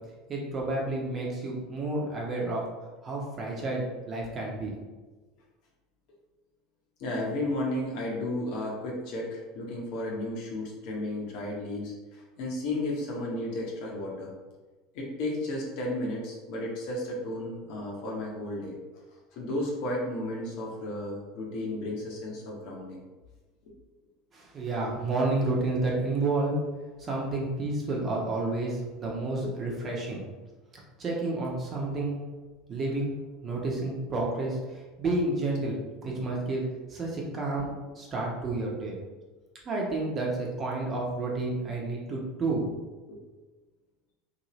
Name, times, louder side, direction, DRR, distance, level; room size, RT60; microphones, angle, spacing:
voice 1, 0.3-2.6 3.0-4.7 24.3-26.6 27.0-30.2 31.0-32.2 32.7-35.7 36.0-36.6 36.9-39.0 39.6-42.7, right 2 dB, 35° right, -2 dB, 1.0 m, -30 dB
voice 2, 7.0-14.3 14.9-18.8 19.3-23.0 23.6-23.7 29.4-29.5 43.1-43.2, left 1 dB, 60° left, -2 dB, 0.9 m, -33 dB
2.9 x 2.8 x 3.1 m, 1.2 s
hypercardioid pair, 75°, 0 cm